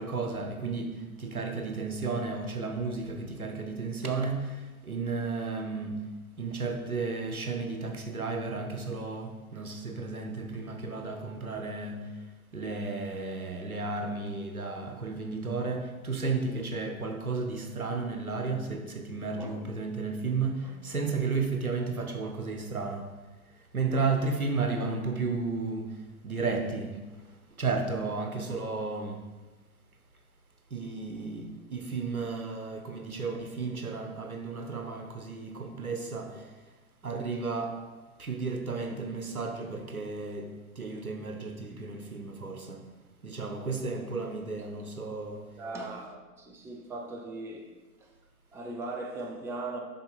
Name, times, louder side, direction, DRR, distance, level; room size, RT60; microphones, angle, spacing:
voice 1, 0.0-6.0 6.4-12.2 12.5-23.1 23.7-26.0 26.2-27.0 27.6-29.2 30.7-36.5 37.0-37.8 38.2-42.8 43.2-45.4, right 4 dB, 85° right, 1.1 m, -33 dB
voice 2, 45.6-48.1 48.5-49.8, right 2 dB, 5° right, 0.5 m, -39 dB
8.0 x 5.8 x 4.1 m
figure-of-eight pair, 95°, 42 cm